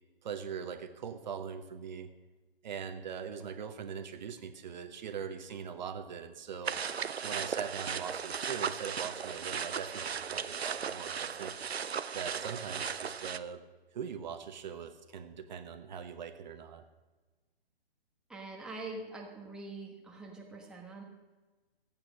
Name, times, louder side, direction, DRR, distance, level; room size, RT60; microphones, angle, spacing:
voice 1, 0.2-2.1 2.6-6.8 7.2-11.5 12.1-13.6 13.9-16.8, right 7 dB, 45° right, 8 dB, 1.2 m, -41 dB
sound 1, 6.6-13.4, right 7 dB, 85° right, 0.7 m, -36 dB
voice 2, 18.3-21.0, right 2 dB, ahead, -1 dB, 1.3 m, -44 dB
14.0 x 8.9 x 6.3 m, 1.2 s
figure-of-eight pair, 135°, 31 cm